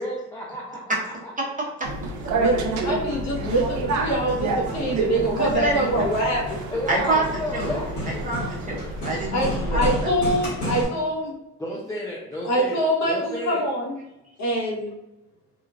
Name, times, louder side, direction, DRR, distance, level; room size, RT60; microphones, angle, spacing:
voice 1, 0.0-1.5 6.7-8.2 11.6-12.8 13.1-13.6, left 1 dB, 10° left, -5 dB, 0.5 m, -32 dB
sound 1, 1.8-10.1, right 2 dB, 70° right, 0.5 m, -30 dB
voice 2, 2.3-6.6 9.3-11.3 12.4-13.9 14.4-14.9, right 1 dB, 60° left, -3 dB, 1.0 m, -24 dB
Hammer, 3.3-10.8, left 1 dB, 80° left, 1.5 m, -32 dB
voice 3, 5.3-5.8 6.9-7.2 7.5-7.7 8.2-10.1, right 3 dB, 25° right, -4 dB, 1.0 m, -26 dB
3.1 x 2.4 x 2.4 m, 0.92 s
cardioid pair, 90°, 30 cm